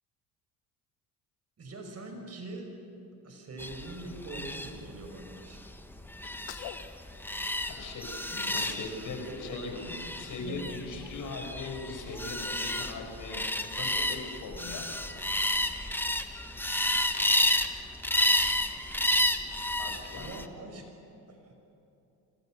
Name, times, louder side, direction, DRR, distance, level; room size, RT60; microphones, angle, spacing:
voice 1, 1.6-2.7 3.2-5.7 8.4-8.8 9.1-10.0 10.3-10.6 20.1-20.9 21.3-21.6, right 2 dB, 40° right, 3 dB, 6.0 m, -43 dB
sound 1, 3.6-20.5, left 1 dB, 5° left, 1.5 m, -31 dB
Sneeze, 6.2-7.8 8.3-8.9 9.2-10.6, left 13 dB, 75° left, 1.3 m, -47 dB
voice 2, 7.8-13.4 13.8-14.9 19.8-20.4, left 3 dB, 55° left, 3 dB, 6.0 m, -40 dB
26.5 x 26.0 x 6.6 m, 2.8 s
supercardioid pair, 85°, 38 cm